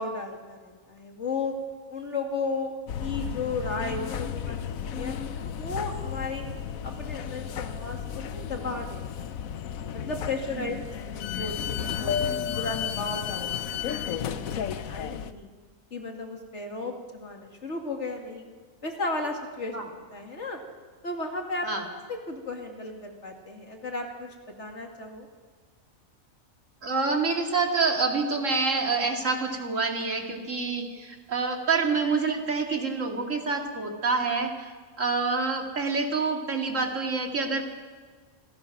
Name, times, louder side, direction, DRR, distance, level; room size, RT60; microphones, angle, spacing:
voice 1, 0.0-1.5 1.9-6.4 6.8-9.5 9.9-10.8 11.0-12.2 12.5-15.5 15.9-18.5 18.8-20.6 21.0-24.3 24.6-25.3, left 3 dB, 55° left, 2 dB, 2.6 m, -35 dB
sound 1, 2.9-15.3, left 8 dB, 80° left, 1.2 m, -33 dB
voice 2, 26.8-34.7 35.0-37.6, right 4 dB, 65° right, 2 dB, 2.6 m, -27 dB
27.0 x 17.0 x 6.0 m, 1.5 s
omnidirectional pair, 1.4 m